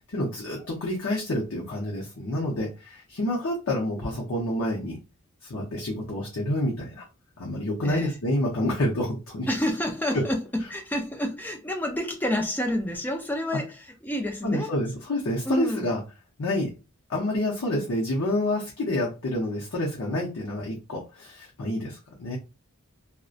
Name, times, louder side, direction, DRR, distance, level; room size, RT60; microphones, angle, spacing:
voice 1, 0.1-5.0 5.4-7.1 7.4-9.5 10.1-10.2 14.4-16.0 16.4-16.7 17.1-22.4, left 1 dB, 65° left, 0.6 m, -28 dB
voice 2, 7.8-8.2 9.5-13.8 14.0-14.7 15.5-15.9, left 1 dB, 10° left, 0.4 m, -29 dB
2.5 x 2.1 x 2.4 m
head